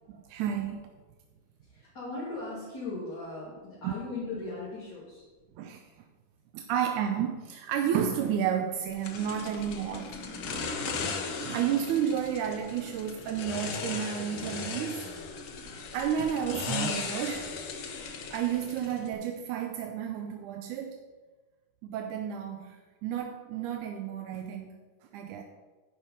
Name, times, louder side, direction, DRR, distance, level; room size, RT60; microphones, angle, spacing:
voice 1, 0.1-0.9 3.8-3.9 5.6-5.9 6.5-10.2 10.5-10.6 11.4-15.1 15.9-17.5 18.3-21.0 21.8-24.7 25.1-25.4, right 9 dB, 75° right, 5 dB, 1.9 m, -31 dB
voice 2, 1.6-5.2 10.7-10.8, left 3 dB, 30° left, -9 dB, 2.8 m, -38 dB
sound 1, 9.0-19.1, left 4 dB, 75° left, 1.2 m, -37 dB
13.0 x 5.5 x 5.5 m, 1.3 s
omnidirectional pair, 4.0 m